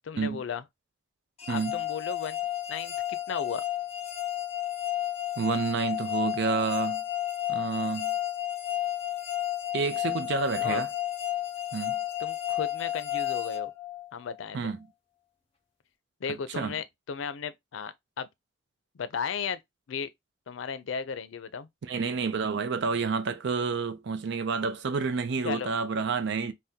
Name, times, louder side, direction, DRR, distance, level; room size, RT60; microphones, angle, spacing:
voice 1, 0.0-0.6 1.5-2.4 2.7-3.6 10.6-10.8 12.2-13.7 14.1-14.7 16.2-18.3 18.9-19.6 19.9-20.1 20.5-21.7 25.4-25.7, left 6 dB, 90° left, 0.4 m, -35 dB
sound 1, 1.4-14.4, left 13 dB, 30° left, 0.7 m, -32 dB
voice 2, 1.5-1.8 5.4-7.0 7.5-8.1 9.7-10.9 11.7-12.0 14.5-14.9 16.5-16.8 21.8-26.5, right 4 dB, 65° right, 0.5 m, -29 dB
2.7 x 2.1 x 3.5 m
head